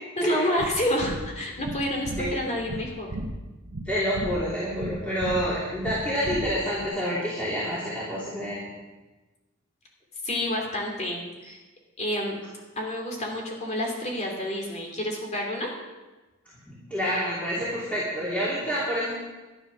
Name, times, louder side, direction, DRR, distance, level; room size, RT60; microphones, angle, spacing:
voice 1, 0.2-3.1 10.2-11.6 12.0-12.4 12.8-15.7, left 1 dB, 35° left, 0 dB, 2.9 m, -29 dB
sound 1, 0.6-6.9, right 1 dB, 80° right, 1.1 m, -36 dB
voice 2, 3.9-8.6 16.9-19.1, equal, 5° left, -9 dB, 3.0 m, -28 dB
12.0 x 11.0 x 6.4 m, 1.2 s
head